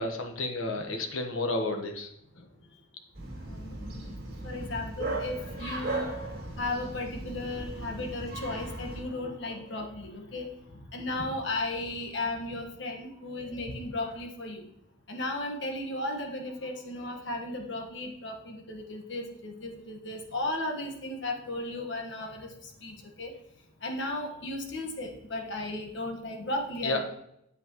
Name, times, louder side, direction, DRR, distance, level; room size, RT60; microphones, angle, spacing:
voice 1, 0.0-2.1 2.3-2.4 26.8-27.0, left 2 dB, 80° left, 4 dB, 1.2 m, -31 dB
Bark, 3.2-9.0, right 2 dB, 50° right, 2.5 m, -37 dB
voice 2, 3.5-4.1 4.4-6.1 6.6-10.5 10.9-14.6 15.1-22.5 22.8-23.3 23.8-27.0, left 2 dB, 60° left, 2 dB, 1.5 m, -35 dB
8.3 x 8.1 x 3.1 m, 0.79 s
head